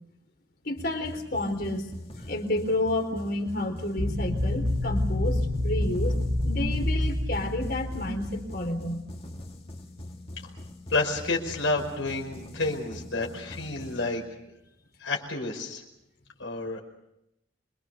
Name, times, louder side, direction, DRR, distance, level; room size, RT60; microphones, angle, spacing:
voice 1, 0.6-1.9 2.2-9.1, left 1 dB, 55° left, 5 dB, 4.0 m, -30 dB
sound 1, 0.8-14.7, left 1 dB, 30° left, 2.0 m, -43 dB
sound 2, 4.0-8.6, left 1 dB, 65° right, 3.3 m, -28 dB
voice 2, 10.9-14.2 15.0-15.8 16.4-16.8, left 2 dB, 85° left, 1 dB, 5.0 m, -29 dB
27.0 x 23.5 x 6.8 m, 0.82 s
head